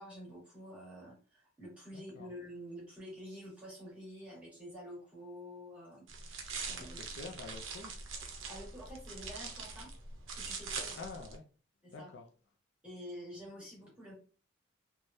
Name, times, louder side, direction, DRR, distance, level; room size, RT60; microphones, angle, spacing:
voice 1, 0.0-7.1 8.5-9.9 10.3-11.0 11.8-12.1 12.8-14.1, equal, 5° right, 1.5 m, -48 dB
voice 2, 1.9-2.3 6.8-7.9 11.0-11.4 11.9-12.2, left 4 dB, 65° left, 0.4 m, -47 dB
sound 1, 6.1-11.4, right 4 dB, 85° right, 0.6 m, -43 dB
3.2 x 2.2 x 2.6 m
head